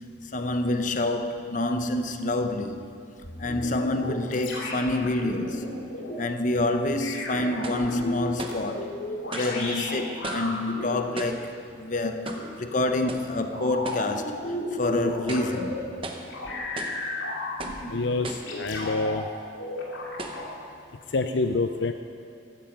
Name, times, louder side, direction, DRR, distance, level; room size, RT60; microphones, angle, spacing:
voice 1, 0.3-2.9 3.4-5.7 6.2-8.9 9.3-12.3 12.6-15.9, left 2 dB, 40° left, 0.8 m, -27 dB
sound 1, 3.2-6.2 7.0-11.0 12.2-12.4 13.5-15.8 16.3-18.0 18.5-19.2 19.6-20.5, left 1 dB, 85° left, 2.9 m, -34 dB
sound 2, 7.6-7.9 8.4-8.7 9.3-9.6 10.2-10.6 11.2-11.5 12.3-12.5 13.1-13.3 13.8-14.1 14.6-14.7 15.2-15.6 16.0-16.3 16.8-17.0 17.6-17.9 18.2-18.6 19.3-19.4 20.2-20.5, right 2 dB, 30° right, 1.0 m, -37 dB
voice 2, 17.9-19.3 21.1-21.9, left 3 dB, 65° left, 0.5 m, -27 dB
15.0 x 14.0 x 5.2 m
head